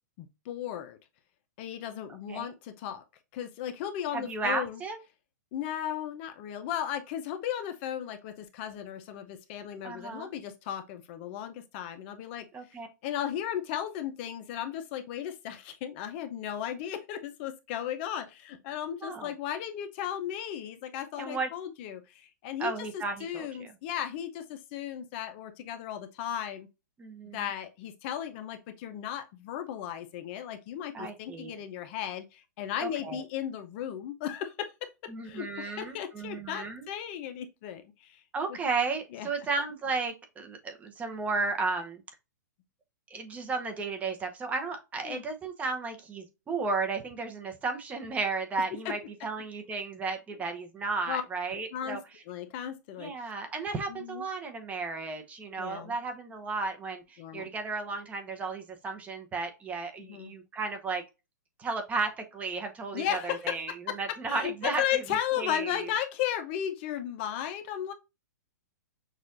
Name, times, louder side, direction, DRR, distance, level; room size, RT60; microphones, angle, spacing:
voice 1, 0.2-1.0 1.6-3.0 3.3-4.8 5.5-12.5 13.0-26.7 27.3-34.7 35.2-38.2 39.1-39.3 45.0-45.2 48.7-48.9 51.1-51.2 51.5-52.0 52.3-53.1 53.9-54.2 55.6-56.0 57.2-57.5 60.0-60.3 62.9-63.5 63.9-64.0 64.3-67.9, left 10 dB, 40° left, 0.6 m, -35 dB
voice 2, 4.1-5.0 9.8-10.3 12.5-12.9 19.0-19.3 21.2-21.5 22.6-23.7 27.0-27.5 30.9-31.6 32.8-33.2 35.1-36.8 38.3-42.0 43.1-52.0 53.0-61.0 61.6-65.0 65.3-65.9, right 4 dB, 15° right, 0.8 m, -34 dB
6.4 x 2.5 x 2.5 m
hypercardioid pair, 145°, 10 cm